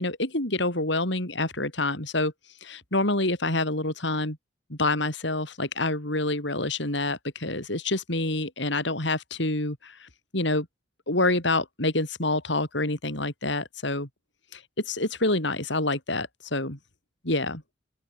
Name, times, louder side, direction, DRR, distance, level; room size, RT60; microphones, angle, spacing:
voice 1, 0.0-2.3 2.6-4.4 4.7-10.7 11.1-14.1 14.5-16.8 17.2-17.6, left 2 dB, 65° left, 4.9 m, -27 dB
open air
head